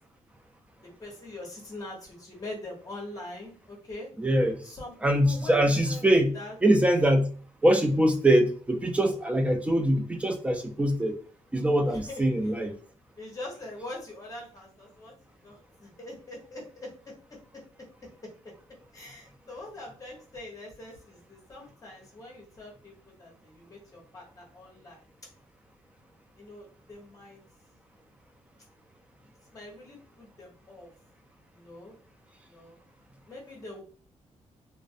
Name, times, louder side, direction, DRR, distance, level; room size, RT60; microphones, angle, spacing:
voice 1, 1.0-4.1 4.6-6.5 11.9-12.2 13.2-15.1 15.4-16.9 18.9-25.0 26.4-27.4 29.5-30.9 31.5-31.9 32.5-32.8 33.3-33.8, left 2 dB, 25° left, -2 dB, 1.0 m, -43 dB
voice 2, 4.2-4.6 5.0-6.3 6.6-7.3 7.6-11.1 11.5-12.7, right 1 dB, 10° right, 5 dB, 0.4 m, -23 dB
2.4 x 2.0 x 2.5 m, 0.43 s
cardioid pair, 120°, 12 cm